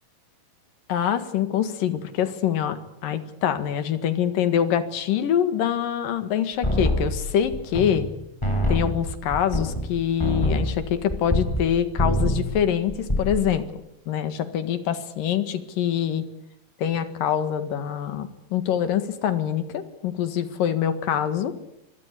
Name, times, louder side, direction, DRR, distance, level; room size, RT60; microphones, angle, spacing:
voice 1, 0.9-8.1 8.7-13.7 14.1-16.2 16.8-21.5, left 9 dB, 80° left, 11 dB, 3.4 m, -25 dB
sound 1, 6.6-8.1 8.4-11.7 12.0-12.5 12.9-13.5, equal, 10° left, 4.5 m, -25 dB
25.0 x 21.5 x 8.4 m, 0.79 s
omnidirectional pair, 3.9 m